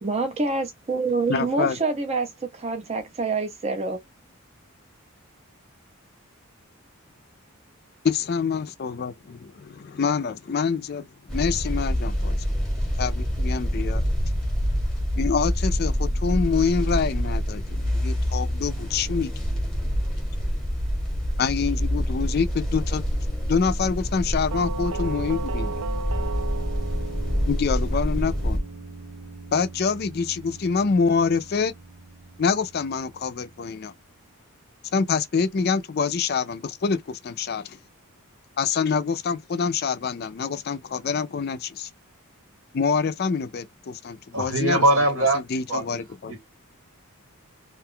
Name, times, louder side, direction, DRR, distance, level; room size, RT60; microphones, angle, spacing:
voice 1, 0.0-4.0, right 3 dB, 30° right, 0.4 m, -26 dB
voice 2, 1.3-1.8 8.0-12.4 13.0-14.0 15.2-19.3 21.4-23.0 23.5-25.7 27.5-28.6 29.5-31.7 32.4-33.9 34.9-37.8 38.6-41.9 42.7-44.8 45.2-46.3, left 5 dB, 45° left, 0.4 m, -26 dB
sound 1, 11.3-28.6, equal, 5° left, 0.9 m, -26 dB
Doorbell, 24.5-33.3, right 3 dB, 80° right, 0.5 m, -37 dB
voice 3, 44.3-45.4 45.7-46.0 46.3-46.4, right 1 dB, 65° right, 1.0 m, -21 dB
2.4 x 2.2 x 3.6 m
head